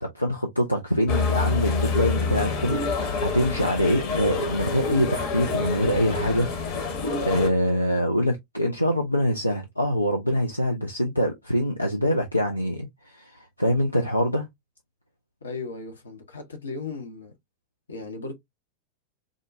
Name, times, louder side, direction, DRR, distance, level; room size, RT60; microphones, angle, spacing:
voice 1, 0.0-14.5, equal, 85° left, 0.5 m, -25 dB
sound 1, 1.1-7.5, left 4 dB, 45° left, 1.0 m, -27 dB
voice 2, 15.4-17.4 17.9-18.3, left 4 dB, 70° left, 0.8 m, -36 dB
3.7 x 2.2 x 2.4 m
figure-of-eight pair, 90°, 0 cm